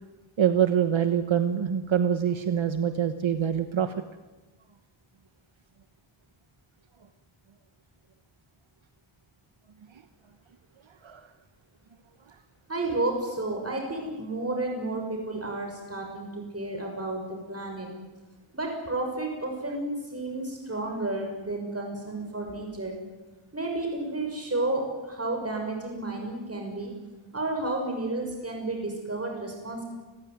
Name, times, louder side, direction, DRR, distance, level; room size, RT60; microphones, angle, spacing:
voice 1, 0.4-4.0 11.0-11.3, right 8 dB, 65° right, 9 dB, 1.3 m, -25 dB
voice 2, 12.7-17.9 18.5-23.0 23.5-26.9 27.3-29.8, right 2 dB, 30° right, 2 dB, 6.3 m, -31 dB
29.5 x 16.0 x 9.5 m, 1.2 s
wide cardioid pair, 85°, 50 cm